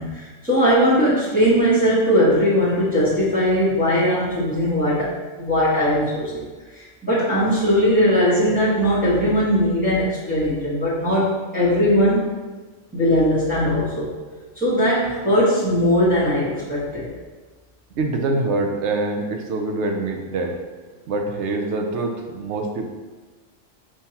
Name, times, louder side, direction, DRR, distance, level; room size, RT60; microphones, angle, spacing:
voice 1, 0.0-6.4 6.7-12.2 12.9-14.1 14.6-17.1, equal, 5° right, -10 dB, 1.4 m, -19 dB
voice 2, 17.9-20.5 21.1-22.9, right 2 dB, 70° right, 3 dB, 0.9 m, -24 dB
5.5 x 3.2 x 2.8 m, 1.3 s
omnidirectional pair, 1.3 m